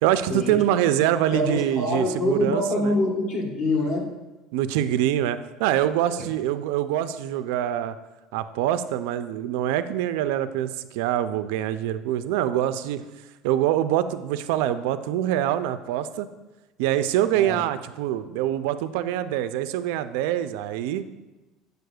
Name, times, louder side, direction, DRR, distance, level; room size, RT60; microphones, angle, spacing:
voice 1, 0.0-3.0 4.5-8.0 8.3-13.0 13.4-16.3 16.8-21.0, right 12 dB, 85° right, 12 dB, 0.3 m, -25 dB
voice 2, 1.3-4.1 6.2-6.3 17.3-17.6, left 2 dB, 50° left, 1 dB, 1.2 m, -25 dB
8.0 x 6.5 x 2.3 m, 1.1 s
cardioid pair, 180°, 0 cm